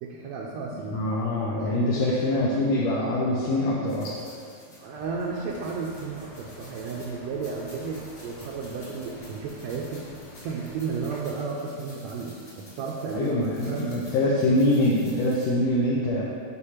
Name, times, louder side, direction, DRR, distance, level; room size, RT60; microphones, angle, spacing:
voice 1, 0.0-1.0 1.6-2.0 4.8-10.1 10.4-13.3 13.7-14.0, right 5 dB, 75° right, -3 dB, 1.7 m, -33 dB
voice 2, 0.9-4.2 13.1-16.2, left 1 dB, 70° left, -5 dB, 1.7 m, -24 dB
sound 1, 3.9-15.4, left 1 dB, 30° left, 2.1 m, -50 dB
sound 2, 4.9-11.2, left 2 dB, 55° left, 1.3 m, -48 dB
6.8 x 4.5 x 5.7 m, 2.3 s
omnidirectional pair, 3.5 m